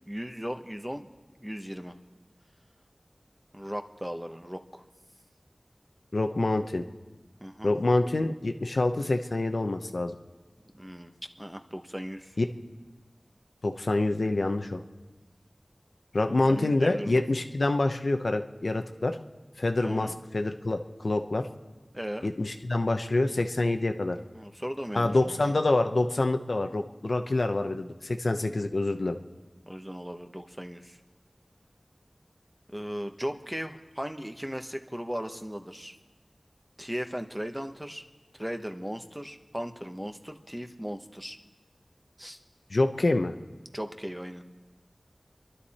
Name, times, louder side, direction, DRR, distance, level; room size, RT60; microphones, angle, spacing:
voice 1, 0.1-1.1 1.4-1.9 3.5-4.9 7.4-7.7 10.7-11.1 11.4-12.4 16.5-17.2 19.8-20.1 21.9-22.3 24.3-25.4 29.7-31.0 32.7-36.0 36.8-38.0 38.3-41.4 42.2-42.4 43.7-44.4, equal, 10° right, 6 dB, 1.1 m, -37 dB
voice 2, 6.1-6.8 7.6-10.1 12.4-12.5 13.6-14.8 16.1-19.2 19.6-21.5 22.2-24.2 24.9-29.2 42.7-43.3, left 2 dB, 80° left, 6 dB, 0.8 m, -26 dB
28.5 x 11.5 x 4.3 m, 1.2 s
wide cardioid pair, 50°, 0 cm